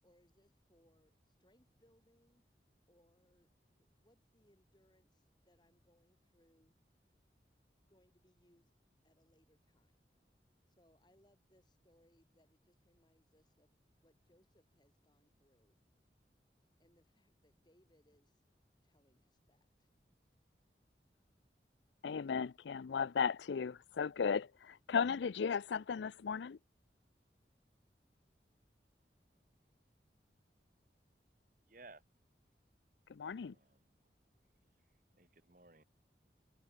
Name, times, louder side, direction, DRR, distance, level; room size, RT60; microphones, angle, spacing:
voice 1, 0.0-2.5 2.9-3.5 3.8-6.8 7.9-8.7 9.0-10.1 10.7-15.8 16.8-18.4 18.8-19.9, equal, 25° left, 7.8 m, -72 dB
voice 2, 22.0-26.6 33.1-33.5, left 6 dB, 90° left, 0.4 m, -36 dB
voice 3, 31.7-32.0 33.4-34.0 35.1-35.8, right 3 dB, 50° right, 2.1 m, -59 dB
head